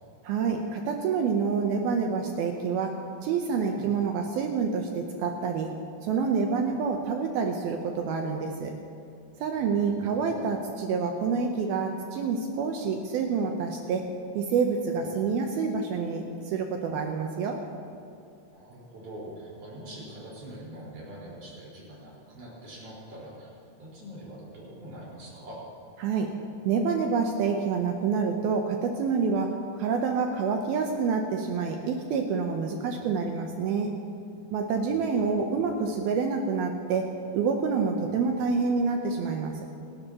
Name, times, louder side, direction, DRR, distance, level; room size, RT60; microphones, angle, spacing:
voice 1, 0.2-2.9 3.2-5.7 6.0-8.7 9.4-14.0 14.4-17.6 26.0-26.3 26.6-33.9 34.5-39.5, right 5 dB, 75° right, 3 dB, 2.4 m, -27 dB
voice 2, 9.5-10.3 15.0-15.4 18.5-23.5 23.8-25.6 32.8-32.9 34.9-35.7 38.1-38.2, right 1 dB, 45° right, -6 dB, 5.9 m, -44 dB
28.0 x 12.5 x 3.0 m, 2.5 s
omnidirectional pair, 5.1 m